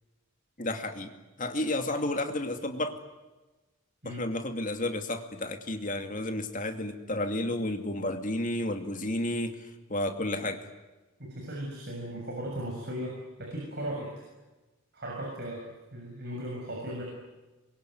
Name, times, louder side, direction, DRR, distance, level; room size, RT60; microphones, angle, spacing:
voice 1, 0.6-1.1 1.4-3.0 4.1-10.6, left 1 dB, 35° left, 6 dB, 2.5 m, -32 dB
voice 2, 11.2-14.1 14.9-17.0, right 1 dB, 50° right, 0 dB, 7.0 m, -37 dB
26.5 x 23.0 x 9.4 m, 1.1 s
head